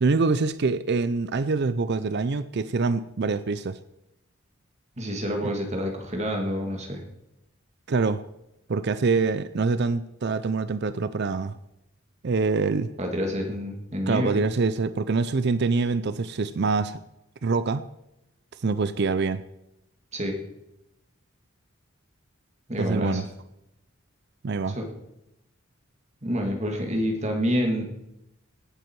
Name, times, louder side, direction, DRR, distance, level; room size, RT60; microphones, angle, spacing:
voice 1, 0.0-3.8 5.4-5.5 7.9-8.2 8.7-11.6 12.2-12.9 14.1-17.0 17.4-17.8 18.6-19.4 22.8-23.3 24.4-24.8, right 4 dB, 55° right, 14 dB, 0.5 m, -25 dB
voice 2, 5.0-7.0 13.0-14.4 20.1-20.4 22.7-23.2 24.8-24.9 26.2-27.8, equal, 35° right, 2 dB, 2.3 m, -28 dB
18.0 x 8.1 x 4.7 m, 0.87 s
head